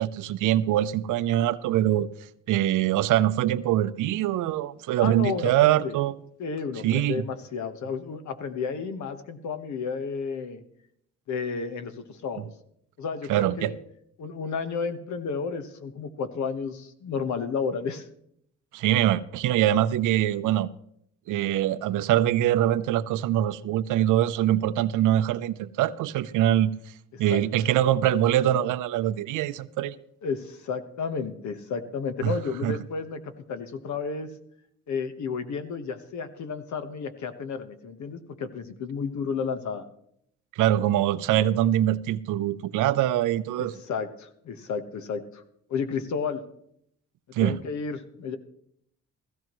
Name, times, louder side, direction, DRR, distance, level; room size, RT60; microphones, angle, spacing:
voice 1, 0.0-2.1 2.5-6.1 6.8-7.2 13.3-13.7 18.7-20.7 21.3-26.7 27.2-30.0 32.2-32.3 32.6-32.8 40.6-43.7 47.3-47.6, right 12 dB, 85° right, 0.6 m, -23 dB
voice 2, 5.0-6.0 6.4-10.6 11.3-12.5 13.0-13.8 14.2-18.1 27.1-27.4 30.2-34.3 34.9-39.8 43.6-45.4 45.7-46.4 47.4-48.4, left 5 dB, 70° left, 1.3 m, -32 dB
15.5 x 15.5 x 3.1 m
cardioid pair, 90°, 30 cm